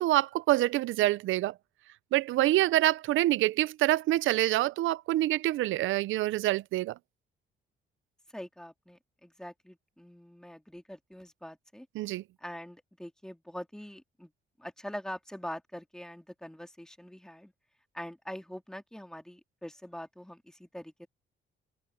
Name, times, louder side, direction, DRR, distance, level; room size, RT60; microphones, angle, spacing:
voice 1, 0.0-1.5 2.1-6.9 12.0-12.2, right 15 dB, 80° right, 0.6 m, -26 dB
voice 2, 8.3-11.9 12.4-14.3 14.6-17.5 17.9-21.1, equal, 5° left, 2.2 m, -44 dB
cardioid pair, 90°, 20 cm